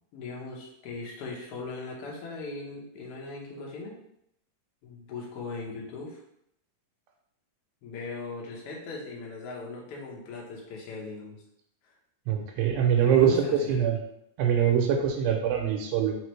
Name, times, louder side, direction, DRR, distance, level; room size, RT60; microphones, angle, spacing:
voice 1, 0.1-3.9 4.8-6.2 7.8-11.4 13.0-13.8, left 3 dB, 85° left, -2 dB, 1.3 m, -39 dB
voice 2, 12.3-13.4 13.7-14.0 14.4-16.2, right 8 dB, 90° right, 1 dB, 2.4 m, -23 dB
5.1 x 3.2 x 3.1 m, 0.76 s
omnidirectional pair, 4.1 m